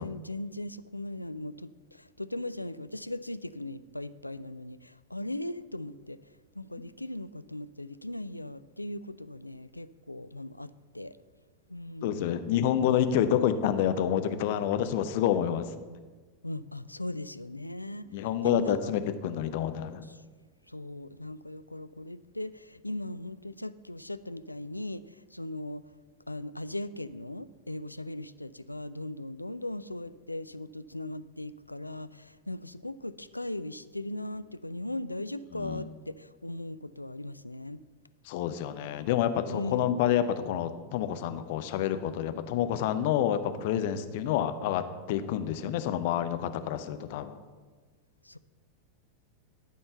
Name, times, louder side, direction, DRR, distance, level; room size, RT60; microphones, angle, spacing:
voice 1, 0.0-6.2 6.6-11.1 11.7-12.4 13.1-13.5 16.4-18.1 18.4-18.8 20.0-20.2 20.7-25.8 26.3-37.8 39.5-40.0 48.2-48.4, left 1 dB, 85° left, 14 dB, 0.3 m, -38 dB
voice 2, 12.0-15.6 18.1-20.0 35.5-35.8 38.3-44.8 45.1-47.4, left 10 dB, 50° left, 10 dB, 0.6 m, -28 dB
12.0 x 4.4 x 6.8 m, 1.4 s
figure-of-eight pair, 90°, 0 cm